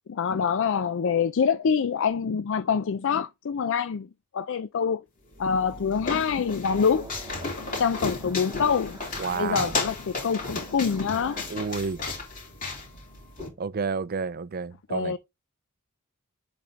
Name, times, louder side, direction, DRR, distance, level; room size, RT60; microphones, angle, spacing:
voice 1, 0.1-5.0 5.4-7.1 7.8-11.5 14.9-15.2, left 6 dB, 60° left, 0.4 m, -26 dB
sound 1, 5.3-13.5, left 3 dB, 40° left, 3.3 m, -34 dB
sound 2, 6.7-11.8, right 2 dB, 15° right, 1.6 m, -48 dB
voice 2, 9.2-9.7 11.5-12.0 13.6-15.2, right 5 dB, 45° right, 0.4 m, -30 dB
7.6 x 4.1 x 3.7 m
head